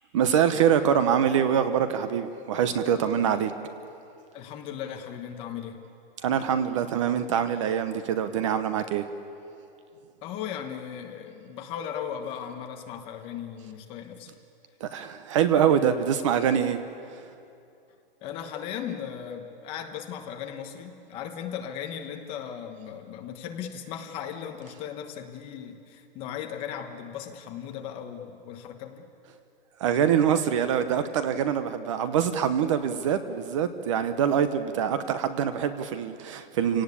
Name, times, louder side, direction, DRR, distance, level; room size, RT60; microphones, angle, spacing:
voice 1, 0.1-3.5 6.2-9.0 14.8-16.8 29.8-36.8, right 8 dB, 35° right, 11 dB, 0.9 m, -24 dB
voice 2, 4.3-5.8 10.2-14.3 18.2-29.1, left 8 dB, 20° left, 4 dB, 1.2 m, -37 dB
28.0 x 18.0 x 8.5 m, 2.6 s
hypercardioid pair, 170°, 29 cm